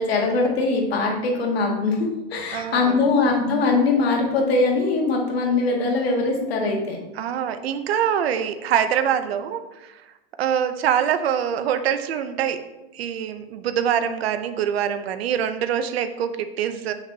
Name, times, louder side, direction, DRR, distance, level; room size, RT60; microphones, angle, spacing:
voice 1, 0.0-7.0, left 3 dB, 80° left, 0 dB, 1.9 m, -22 dB
voice 2, 2.5-3.0 7.1-10.0 10.4-12.6 12.9-16.9, right 9 dB, 85° right, 10 dB, 0.7 m, -24 dB
6.8 x 5.8 x 2.8 m, 1.0 s
supercardioid pair, 160°, 30 cm